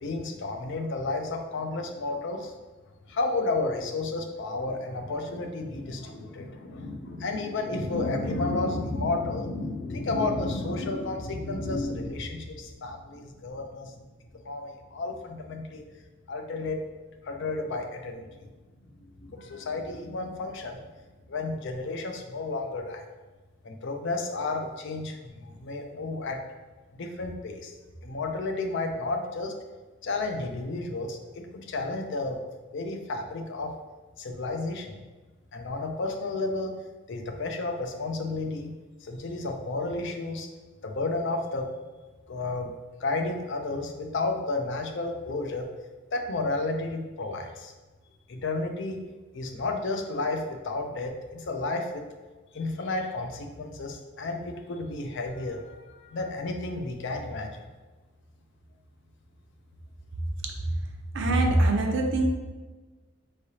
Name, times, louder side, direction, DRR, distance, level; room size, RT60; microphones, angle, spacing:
voice 1, 0.0-2.5 3.1-14.0 14.4-15.8 16.3-16.8 17.2-18.5 19.0-20.8 21.3-23.0 23.6-26.4 26.9-27.7 28.0-29.5 30.0-32.4 32.7-33.7 34.2-35.0 35.5-36.7 37.1-38.7 39.0-40.5 40.8-41.7 42.3-42.7 43.0-45.6 46.1-47.7 48.3-49.0 49.3-52.0 52.5-57.6, left 2 dB, 60° left, 4 dB, 0.5 m, -32 dB
voice 2, 60.4-60.8 61.1-62.3, right 2 dB, 60° right, 2 dB, 0.6 m, -24 dB
4.6 x 3.3 x 2.8 m, 1.3 s
head